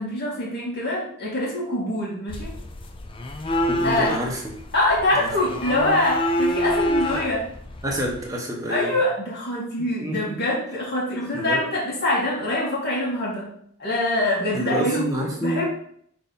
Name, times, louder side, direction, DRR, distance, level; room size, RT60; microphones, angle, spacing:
voice 1, 0.0-2.5 3.8-4.1 4.7-7.5 8.7-13.5 13.8-15.0 15.4-15.7, left 1 dB, 45° left, -5 dB, 2.3 m, -24 dB
sound 1, 2.3-8.3, equal, 25° left, 0.5 m, -27 dB
voice 2, 3.7-4.6 5.2-5.3 7.8-8.9 10.0-10.4 11.3-11.6 14.5-15.6, equal, 15° right, -1 dB, 1.3 m, -28 dB
5.9 x 4.1 x 3.9 m, 0.65 s
head